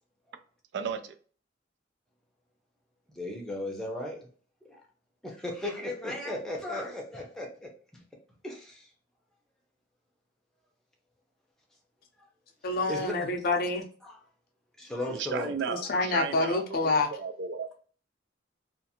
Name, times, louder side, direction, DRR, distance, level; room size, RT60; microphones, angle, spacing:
voice 1, 0.7-1.1 15.1-17.7, right 6 dB, 60° right, 9 dB, 0.3 m, -34 dB
voice 2, 3.2-4.3 5.2-7.7 8.4-8.9 12.9-13.2 14.0-14.1 14.8-15.6, left 1 dB, ahead, -1 dB, 0.6 m, -35 dB
voice 3, 12.6-13.8 15.7-17.1, left 3 dB, 50° left, 4 dB, 0.5 m, -27 dB
2.4 x 2.4 x 2.8 m, 0.43 s
head